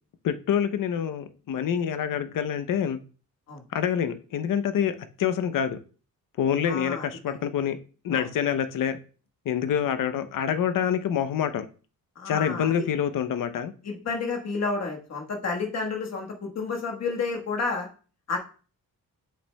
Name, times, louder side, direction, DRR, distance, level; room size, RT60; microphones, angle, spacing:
voice 1, 0.2-3.0 3.7-5.8 6.4-7.8 8.0-9.0 9.5-11.6 12.3-13.7, left 8 dB, 60° left, 10 dB, 0.7 m, -26 dB
voice 2, 6.7-7.1 8.1-8.3 12.2-12.8 13.8-17.9 18.3-18.4, left 4 dB, 45° left, 1 dB, 1.4 m, -30 dB
7.9 x 6.6 x 2.2 m, 0.38 s
wide cardioid pair, 180°, 36 cm